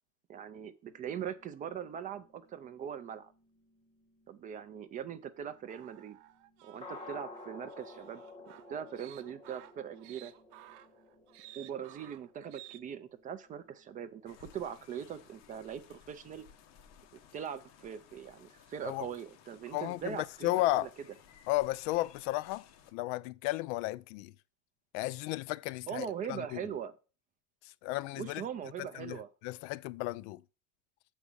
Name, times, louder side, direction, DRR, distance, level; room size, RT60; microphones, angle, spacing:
voice 1, 0.3-3.3 4.3-6.2 6.6-8.2 8.7-10.3 11.6-16.4 17.3-21.1 25.9-27.0 28.2-29.3, right 8 dB, 25° right, 0.3 m, -41 dB
sound 1, 0.9-15.7 16.0-16.1 16.4-16.5 16.9-17.0 17.4-17.5 17.6-17.7, left 3 dB, 15° left, 1.2 m, -55 dB
sound 2, 5.7-12.8, right 15 dB, 75° right, 0.8 m, -55 dB
sound 3, 14.3-22.9, left 8 dB, 45° left, 0.9 m, -59 dB
voice 2, 19.7-20.2 20.4-20.9 21.5-22.7 22.9-24.3 24.9-26.6 27.8-28.4 28.9-29.2 29.4-30.4, left 18 dB, 75° left, 0.5 m, -33 dB
7.1 x 5.1 x 6.9 m
cardioid pair, 170°, 36 cm